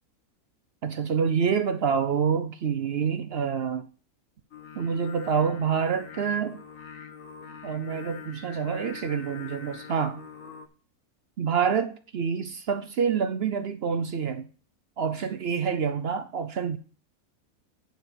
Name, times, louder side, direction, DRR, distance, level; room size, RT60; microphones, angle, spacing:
voice 1, 0.8-3.9 4.8-6.6 7.6-10.3 11.4-14.5 15.0-16.8, right 6 dB, 60° right, 0.7 m, -27 dB
Singing, 4.5-10.7, left 7 dB, 65° left, 1.5 m, -44 dB
9.4 x 4.3 x 6.7 m
omnidirectional pair, 1.5 m